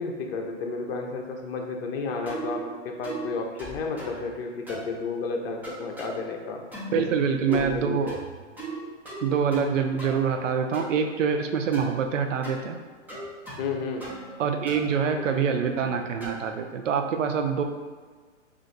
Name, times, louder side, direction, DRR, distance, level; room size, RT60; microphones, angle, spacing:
voice 1, 0.0-6.6 6.9-7.0 7.5-8.0 13.6-14.1, left 4 dB, 50° left, 2 dB, 0.6 m, -32 dB
sound 1, 2.3-2.6 3.0-3.3 3.6-4.2 4.7-4.9 5.6-6.1 6.7-7.0 7.5-8.8 9.1-9.7 10.0-10.9 11.7-12.0 12.4-12.6 13.1-13.7 14.0-14.4 14.7-16.5, right 2 dB, 5° right, 0.5 m, -38 dB
voice 2, 6.9-8.2 9.2-12.8 14.4-17.6, right 6 dB, 85° right, 5 dB, 0.5 m, -25 dB
2.5 x 2.4 x 3.8 m, 1.5 s
hypercardioid pair, 125°, 37 cm